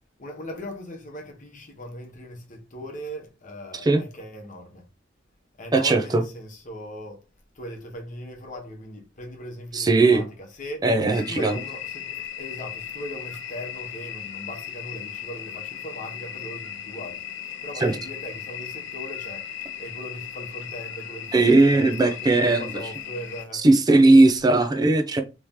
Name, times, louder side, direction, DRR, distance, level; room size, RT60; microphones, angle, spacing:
voice 1, 0.2-4.9 5.6-7.2 7.5-10.8 11.2-23.7, equal, 45° left, 1.0 m, -39 dB
voice 2, 5.7-6.2 9.7-10.2 10.8-11.6 17.8-18.0 21.3-22.6 23.6-25.2, right 2 dB, 20° right, 0.4 m, -18 dB
sound 1, 11.1-23.4, left 9 dB, 85° left, 0.6 m, -37 dB
3.1 x 2.8 x 3.5 m
head